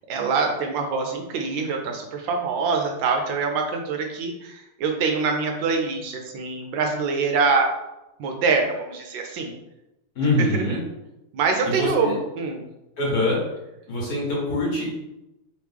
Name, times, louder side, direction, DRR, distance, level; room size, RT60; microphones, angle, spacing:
voice 1, 0.1-7.7 8.2-9.5 10.4-10.8 11.3-12.6, right 4 dB, 70° right, 3 dB, 1.2 m, -24 dB
voice 2, 10.1-10.8 11.6-12.2 13.0-13.4 13.9-14.9, left 2 dB, 50° left, -4 dB, 1.3 m, -24 dB
3.6 x 3.1 x 3.4 m, 0.94 s
omnidirectional pair, 2.4 m